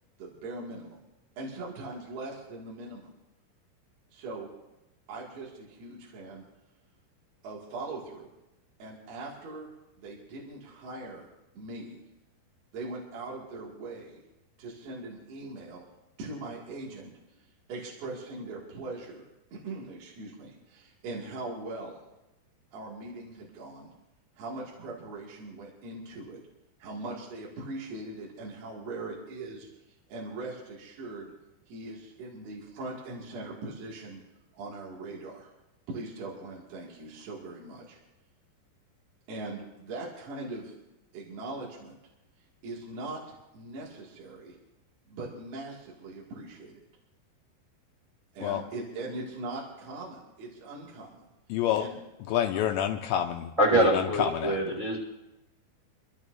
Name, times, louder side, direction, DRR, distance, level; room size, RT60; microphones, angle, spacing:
voice 1, 0.2-1.0 1.4-3.1 4.1-4.5 5.1-6.4 7.4-8.3 8.8-9.7 10.0-11.3 11.5-12.0 12.7-14.2 14.6-15.8 16.2-17.1 17.7-19.3 19.5-22.0 22.7-23.9 24.4-26.4 26.8-29.7 30.1-31.3 31.7-34.2 34.5-35.5 35.9-38.0 39.3-40.7 41.1-42.0 42.6-44.6 45.1-46.7 48.3-51.2 51.8-52.0, right 2 dB, 60° right, -4 dB, 4.0 m, -40 dB
voice 2, 51.5-51.9 52.3-54.6, left 10 dB, 80° left, 4 dB, 2.7 m, -28 dB
voice 3, 53.6-55.0, right 1 dB, 5° right, -4 dB, 4.8 m, -24 dB
30.0 x 12.5 x 2.7 m, 0.97 s
omnidirectional pair, 5.7 m